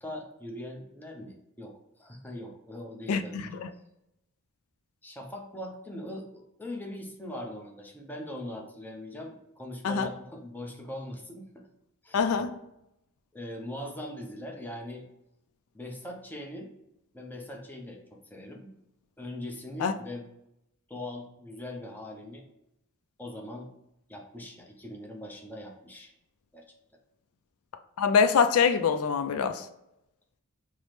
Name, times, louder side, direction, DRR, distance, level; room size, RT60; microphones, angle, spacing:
voice 1, 0.0-3.7 5.0-11.7 12.0-12.5 13.3-15.0 15.7-16.7 17.1-18.7 19.2-20.3 20.9-22.4 23.2-23.7 24.1-26.1 26.5-26.6, left 1 dB, 10° left, 1 dB, 0.5 m, -41 dB
voice 2, 3.1-3.7 9.8-10.1 12.1-12.5 19.8-19.9 28.0-29.7, left 6 dB, 75° left, 8 dB, 0.3 m, -24 dB
5.6 x 2.0 x 3.2 m, 0.84 s
head